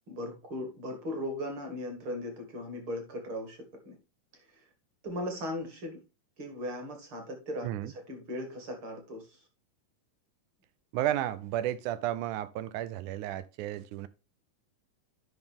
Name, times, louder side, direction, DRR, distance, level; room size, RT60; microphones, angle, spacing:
voice 1, 0.1-3.9 4.3-4.6 5.0-6.0 6.4-9.4, left 1 dB, 40° right, 2.5 m, -38 dB
voice 2, 10.9-14.1, right 13 dB, 80° right, 1.9 m, -33 dB
10.5 x 5.6 x 3.5 m
omnidirectional pair, 3.9 m